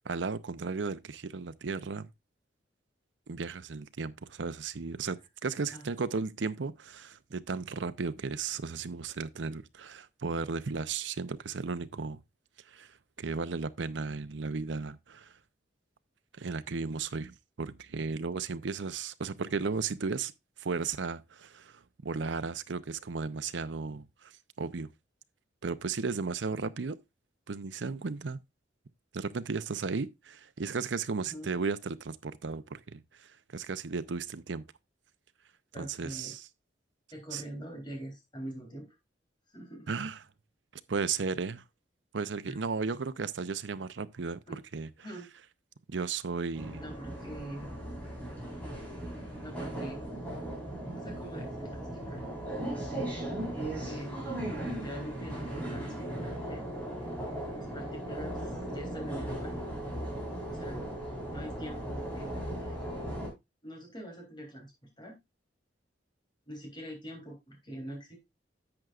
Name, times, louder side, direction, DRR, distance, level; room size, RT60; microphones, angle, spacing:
voice 1, 0.0-2.1 3.3-12.2 12.7-15.3 16.4-20.3 20.6-24.3 24.6-24.9 25.6-27.0 27.5-28.4 29.1-34.6 35.8-36.4 37.3-37.4 39.9-40.2 40.9-41.6 42.1-44.4 44.7-44.9 45.9-46.8, right 4 dB, 75° right, 0.6 m, -35 dB
voice 2, 35.7-36.3 37.1-38.9 39.5-39.9 42.4-42.6 44.5-44.6 45.0-45.3 46.8-47.8 49.4-50.1 50.9-52.7 53.6-54.2 54.7-56.7 57.6-59.6 60.5-62.8 63.6-64.7 65.0-65.2 66.5-68.2, right 1 dB, 25° left, 3.3 m, -44 dB
sound 1, 46.5-63.3, right 1 dB, 10° left, 4.2 m, -37 dB
10.5 x 7.8 x 2.4 m
head